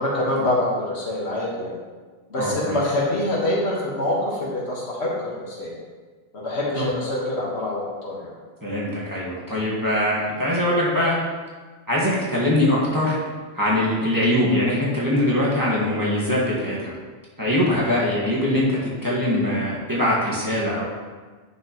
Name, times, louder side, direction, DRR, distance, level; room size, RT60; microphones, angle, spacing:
voice 1, 0.0-1.7 2.3-5.7 6.3-8.3 18.2-18.4, left 1 dB, 85° left, -4 dB, 1.8 m, -25 dB
voice 2, 2.4-2.8 6.8-6.9 8.6-11.2 11.9-13.2 13.5-16.9 17.4-20.8, left 1 dB, 20° right, -7 dB, 1.7 m, -22 dB
9.2 x 6.2 x 3.0 m, 1.4 s
omnidirectional pair, 1.1 m